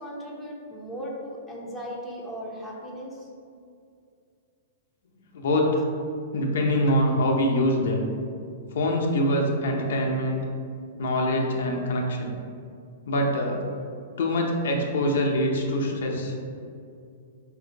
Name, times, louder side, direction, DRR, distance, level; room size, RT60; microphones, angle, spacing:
voice 1, 0.0-3.3 6.9-7.0, equal, 5° left, -5 dB, 0.8 m, -37 dB
voice 2, 5.3-5.8 6.3-8.1 8.7-10.4 11.0-12.3 13.1-13.6 14.2-16.3, left 1 dB, 70° left, 0 dB, 0.6 m, -24 dB
4.2 x 2.6 x 3.9 m, 2.4 s
hypercardioid pair, 125°, 0 cm